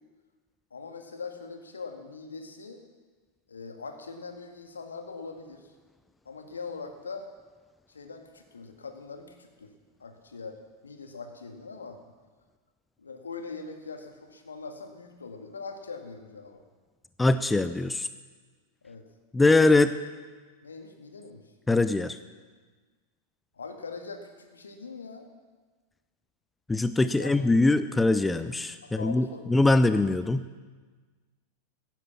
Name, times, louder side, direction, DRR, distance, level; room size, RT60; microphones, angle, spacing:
voice 1, 0.7-2.8 3.5-5.7 6.3-7.3 7.9-9.7 10.0-10.6 10.8-12.0 13.0-16.6 18.8-19.0 20.6-21.4 23.5-25.3 27.2-27.4 28.8-29.5, left 4 dB, 75° left, 5 dB, 1.8 m, -42 dB
voice 2, 17.2-18.1 19.3-19.9 21.7-22.2 26.7-30.4, left 2 dB, 10° left, 12 dB, 0.5 m, -22 dB
15.5 x 10.5 x 7.2 m, 1.4 s
figure-of-eight pair, 90°, 0 cm